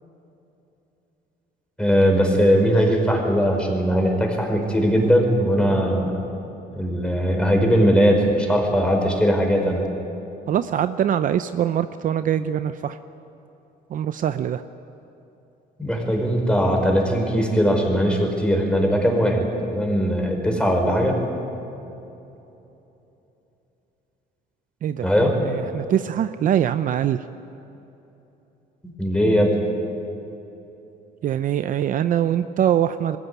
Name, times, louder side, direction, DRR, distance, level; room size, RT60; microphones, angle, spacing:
voice 1, 1.8-6.2 6.7-9.8 15.8-21.2 25.0-25.4 29.0-29.5, equal, 5° left, 2 dB, 4.7 m, -20 dB
voice 2, 10.5-13.0 13.9-14.6 20.5-20.6 24.8-25.1 25.4-27.2 31.2-33.2, right 10 dB, 50° right, 11 dB, 0.6 m, -23 dB
21.0 x 16.0 x 9.4 m, 2.9 s
cardioid pair, 110°, 17 cm